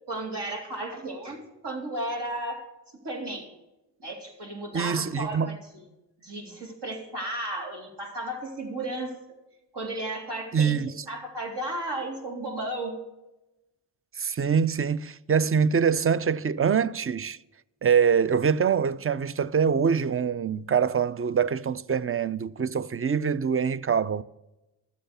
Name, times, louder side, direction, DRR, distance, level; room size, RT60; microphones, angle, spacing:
voice 1, 0.1-2.6 3.0-3.5 4.0-5.6 6.2-9.1 9.7-10.8 11.1-13.0, right 1 dB, 60° right, 3.6 m, -34 dB
voice 2, 4.7-5.6 10.5-10.9 14.2-17.4 17.8-24.2, right 6 dB, 30° right, 0.6 m, -24 dB
13.0 x 7.8 x 6.8 m
supercardioid pair, 40°, 45 cm